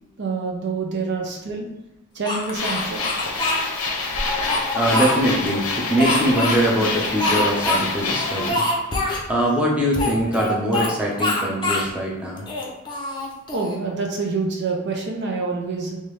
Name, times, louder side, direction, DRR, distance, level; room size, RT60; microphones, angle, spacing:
voice 1, 0.2-1.7 2.2-3.1 13.5-16.0, right 4 dB, 55° right, 0 dB, 0.5 m, -26 dB
Speech, 2.2-3.6 4.2-5.5 6.0-6.6 7.2-7.8 8.1-8.2 8.5-9.2 9.9-10.9 11.2-11.9 12.4-13.7, left 1 dB, 20° left, 0.6 m, -24 dB
sound 1, 2.5-8.5, left 3 dB, 90° left, 0.7 m, -26 dB
voice 2, 4.7-8.6 9.3-12.4, equal, 5° right, -4 dB, 0.8 m, -22 dB
3.6 x 2.7 x 3.2 m, 1.0 s
head